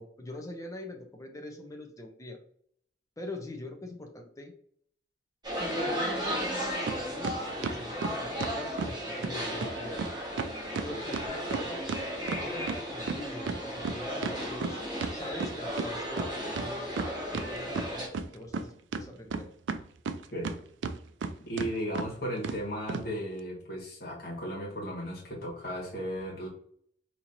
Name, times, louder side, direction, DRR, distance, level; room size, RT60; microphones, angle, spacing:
voice 1, 0.0-2.4 3.2-4.5 5.6-10.0 10.8-11.8 12.4-14.8 15.1-16.9 17.3-19.5, left 1 dB, 15° left, 3 dB, 0.5 m, -43 dB
sound 1, 5.4-18.1, equal, 20° right, 1.5 m, -35 dB
sound 2, 6.9-7.0 7.2-9.0 9.2-9.3 9.6-9.7 10.0-10.1 10.4-12.8 13.1-15.9 16.2-16.3 16.6-17.5 17.8-18.6 18.9-20.6 20.8-21.3 21.6-21.7 22.0-22.1 22.4-22.6 22.9-23.0, right 4 dB, 75° right, 0.4 m, -33 dB
voice 2, 21.4-26.5, equal, 55° left, -3 dB, 1.5 m, -35 dB
4.3 x 2.9 x 2.6 m, 0.63 s
head